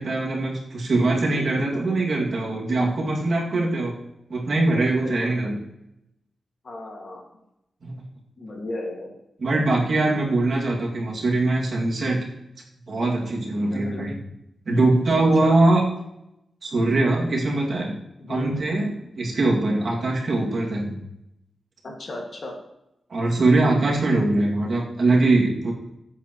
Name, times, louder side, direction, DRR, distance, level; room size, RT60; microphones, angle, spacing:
voice 1, 0.0-4.0 4.3-5.6 7.8-8.0 9.4-12.2 12.9-14.1 14.7-15.8 16.6-18.0 18.3-21.0 23.1-25.7, right 2 dB, 50° right, -2 dB, 2.5 m, -22 dB
voice 2, 1.3-2.0 3.5-3.6 4.9-5.4 6.6-7.2 8.4-9.2 13.7-14.1 15.2-15.6 18.2-18.6 21.8-22.6, left 1 dB, 45° left, 0 dB, 2.1 m, -35 dB
15.5 x 8.5 x 3.1 m, 0.84 s
wide cardioid pair, 170°, 0 cm